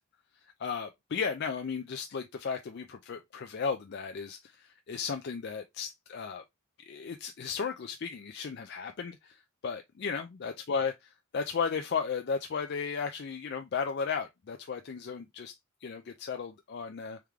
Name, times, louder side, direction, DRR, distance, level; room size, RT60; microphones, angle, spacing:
voice 1, 0.6-6.4 6.9-15.5 15.8-17.2, left 5 dB, 50° left, 0.4 m, -35 dB
3.5 x 3.5 x 3.2 m
head